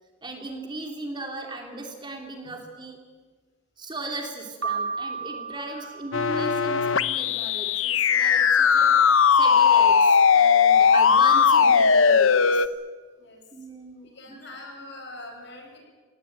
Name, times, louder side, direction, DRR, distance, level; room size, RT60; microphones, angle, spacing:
voice 1, 0.2-3.0 3.8-8.9 9.4-12.7 13.5-14.5, right 2 dB, 20° right, 2 dB, 2.9 m, -37 dB
Piano, 4.6-6.8, right 5 dB, 75° right, 2.6 m, -33 dB
sound 1, 6.1-12.7, left 6 dB, 75° left, 0.8 m, -18 dB
voice 2, 14.0-15.8, left 2 dB, 55° left, 2 dB, 7.1 m, -43 dB
25.5 x 18.5 x 9.1 m, 1.5 s
head